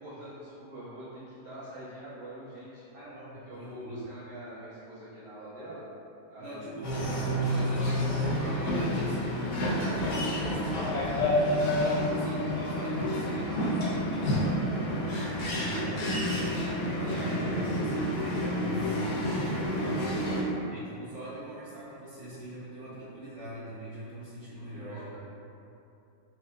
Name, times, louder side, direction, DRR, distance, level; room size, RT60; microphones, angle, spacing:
voice 1, 0.0-2.8 3.4-5.8 6.3-6.6 7.7-8.0 9.7-11.7 12.0-12.3 22.8-22.9 24.7-25.2, equal, 40° right, -14 dB, 1.5 m, -45 dB
voice 2, 2.9-4.1 6.4-10.9 11.4-20.4 20.7-25.2, right 1 dB, 65° right, -9 dB, 0.8 m, -42 dB
sound 1, 6.8-20.4, equal, 65° left, 0.7 m, -29 dB
4.3 x 2.4 x 2.4 m, 2.8 s
omnidirectional pair, 1.8 m